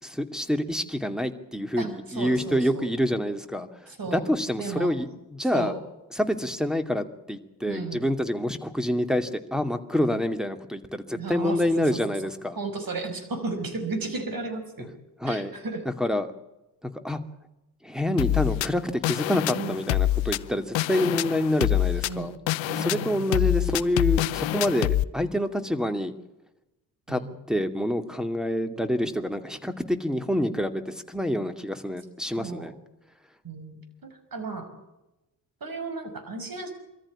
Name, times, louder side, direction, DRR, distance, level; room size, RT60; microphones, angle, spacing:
voice 1, 0.0-5.7 6.1-12.6 15.2-15.5 16.0-16.3 16.8-17.2 17.8-22.3 22.7-26.1 27.1-27.2 27.5-32.7, left 1 dB, ahead, 9 dB, 2.5 m, -27 dB
voice 2, 1.8-2.9 3.9-4.2 4.6-5.2 5.5-5.7 7.7-8.1 11.1-12.1 12.6-14.9 15.3-15.8 19.5-19.8 22.0-22.3 22.6-23.5 27.1-27.3 32.4-32.7 33.4-34.7 35.6-36.7, right 3 dB, 45° right, 8 dB, 5.6 m, -34 dB
sound 1, 18.2-25.0, left 14 dB, 65° left, 0.8 m, -26 dB
23.0 x 14.5 x 8.6 m, 0.99 s
hypercardioid pair, 45°, 48 cm